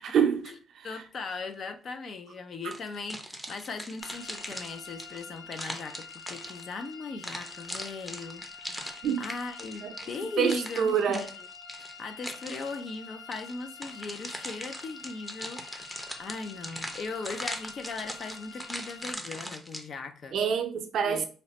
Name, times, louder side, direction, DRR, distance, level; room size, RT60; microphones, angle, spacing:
voice 1, 0.0-0.9 9.0-9.2 9.8-9.9 10.4-11.3 20.3-21.3, right 7 dB, 70° right, 0.5 m, -27 dB
voice 2, 0.8-11.3 12.0-20.4 21.0-21.3, left 4 dB, 55° left, 0.5 m, -39 dB
sound 1, 2.7-6.9 7.2-12.8 13.3-19.8, equal, 5° left, 0.6 m, -40 dB
sound 2, 4.0-19.1, left 5 dB, 75° left, 0.9 m, -47 dB
2.9 x 2.1 x 4.0 m
cardioid pair, 90°, 0 cm